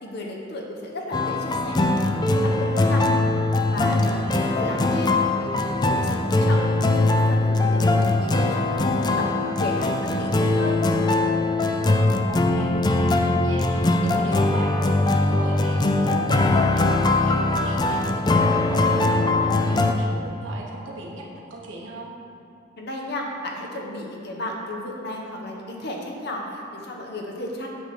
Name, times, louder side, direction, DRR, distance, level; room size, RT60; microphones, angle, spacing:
voice 1, 0.0-3.1 3.6-6.6 6.9-10.8 22.8-27.7, left 1 dB, 55° left, 0 dB, 1.1 m, -34 dB
sound 1, 1.1-19.9, left 2 dB, 20° left, 0.4 m, -21 dB
voice 2, 4.2-5.2 12.3-22.1, right 1 dB, 70° right, -2 dB, 1.3 m, -36 dB
8.3 x 3.7 x 6.7 m, 2.7 s
head